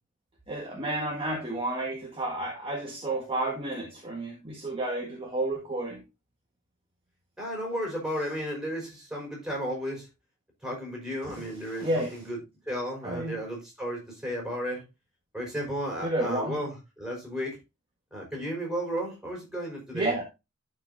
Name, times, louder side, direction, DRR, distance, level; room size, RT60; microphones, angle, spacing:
voice 1, 0.5-6.0 11.4-12.2 13.0-13.4 16.0-16.6 19.9-20.2, right 1 dB, 25° right, 1.6 m, -31 dB
voice 2, 7.4-10.1 10.6-14.8 15.3-17.6 18.1-20.1, equal, 5° right, 5.3 m, -34 dB
11.5 x 5.8 x 2.7 m
head